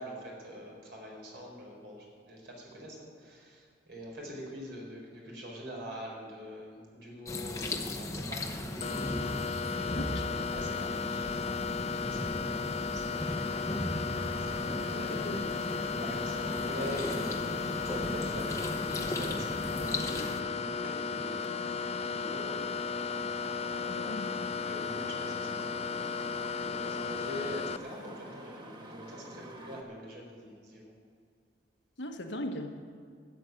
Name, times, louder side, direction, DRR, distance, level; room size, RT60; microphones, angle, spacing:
voice 1, 0.0-14.0 14.4-15.4 15.7-22.8 24.6-30.9, equal, 65° right, -1 dB, 4.4 m, -44 dB
sound 1, 7.3-20.4, left 1 dB, 20° left, 0.9 m, -37 dB
sound 2, 8.8-27.8, left 5 dB, 35° left, 0.4 m, -35 dB
voice 2, 9.9-10.4 14.9-15.5 23.9-24.3 32.0-32.8, left 1 dB, 80° left, 4 dB, 1.4 m, -39 dB
sound 3, 13.5-29.8, right 1 dB, 25° right, 1.4 m, -48 dB
13.0 x 8.1 x 9.4 m, 2.1 s
head